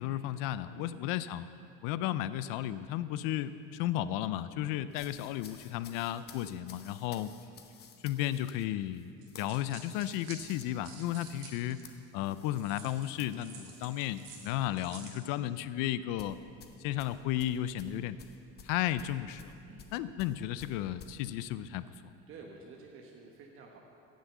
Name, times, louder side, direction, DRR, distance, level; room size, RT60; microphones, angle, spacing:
voice 1, 0.0-1.5 1.8-7.3 8.0-9.1 9.4-16.4 16.8-18.2 18.6-19.5 19.9-21.8, left 13 dB, 75° left, 14 dB, 0.5 m, -34 dB
sound 1, 4.9-14.5 14.8-15.1 16.2-21.2, left 6 dB, 30° left, 0.8 m, -55 dB
sound 2, 9.2-12.0 12.5-15.2, right 5 dB, 65° right, 2.3 m, -50 dB
voice 2, 22.3-23.8, right 4 dB, 40° right, 0 dB, 1.1 m, -51 dB
15.5 x 6.4 x 8.2 m, 2.6 s
cardioid pair, 160°, 32 cm